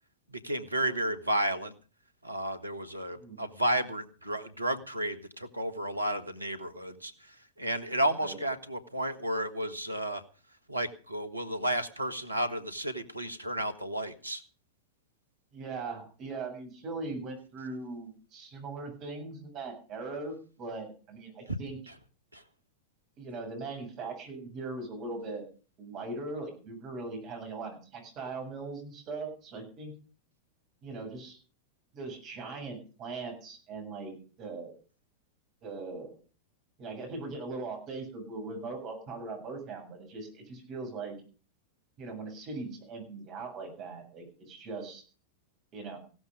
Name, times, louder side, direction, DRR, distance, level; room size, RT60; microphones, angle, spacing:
voice 1, 0.3-1.7 2.2-10.2 10.7-14.4 21.5-21.6 21.9-22.0 22.3-22.4, right 1 dB, 85° right, 10 dB, 1.6 m, -32 dB
voice 2, 15.5-21.8 23.2-25.4 25.8-29.9 30.8-31.4 31.9-34.8 35.6-36.2 36.8-41.2 42.0-45.0 45.7-46.0, right 3 dB, 35° right, 5 dB, 7.7 m, -40 dB
16.5 x 13.0 x 5.2 m, 0.38 s
figure-of-eight pair, 90°, 0 cm